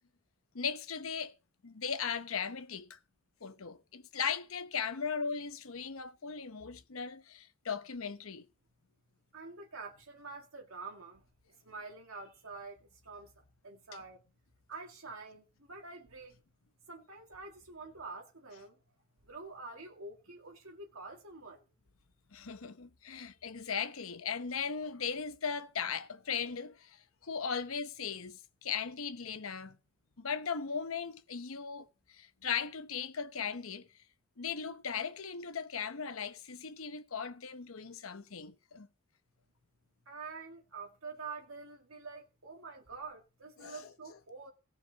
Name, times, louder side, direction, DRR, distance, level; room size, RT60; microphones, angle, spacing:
voice 1, 0.5-1.3 1.6-3.0 3.4-8.4 22.3-29.8 30.2-33.9 34.4-38.9 43.6-44.2, left 6 dB, 85° left, 0.9 m, -38 dB
voice 2, 9.3-11.3 11.6-14.2 14.7-16.4 16.9-18.8 19.2-21.6 40.1-44.5, right 4 dB, 85° right, 2.0 m, -47 dB
18.0 x 6.1 x 4.0 m
head